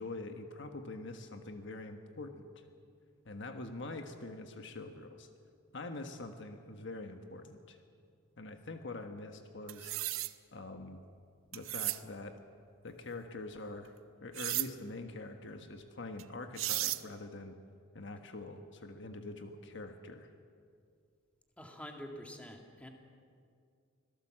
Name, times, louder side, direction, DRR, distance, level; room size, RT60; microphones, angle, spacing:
voice 1, 0.0-2.4 3.2-5.3 5.7-7.8 8.4-9.9 10.5-11.0 11.5-12.4 12.8-13.9 14.2-17.6 17.9-20.3, left 2 dB, 60° left, 6 dB, 1.4 m, -44 dB
sound 1, 9.7-10.3 11.5-12.0 14.3-14.7 16.2-16.3 16.6-17.0, right 16 dB, 80° right, 0.7 m, -34 dB
voice 2, 21.6-22.9, equal, 5° left, 2 dB, 2.1 m, -47 dB
25.0 x 17.5 x 7.6 m, 2.3 s
head